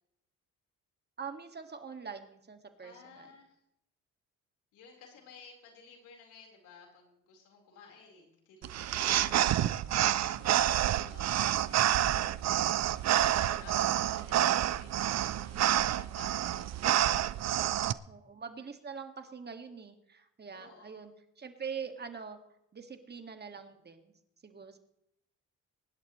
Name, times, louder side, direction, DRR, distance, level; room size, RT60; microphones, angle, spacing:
voice 1, 1.2-3.3 18.1-22.4 22.7-24.1 24.4-24.8, right 6 dB, 35° right, 6 dB, 1.9 m, -44 dB
voice 2, 2.8-3.6 4.7-12.2 13.2-15.0 15.3-16.7 20.5-21.1, left 5 dB, 90° left, 0 dB, 4.3 m, -55 dB
sound 1, 8.6-17.9, right 12 dB, 60° right, 0.6 m, -28 dB
23.5 x 11.5 x 3.1 m, 0.79 s
cardioid pair, 90°, 30 cm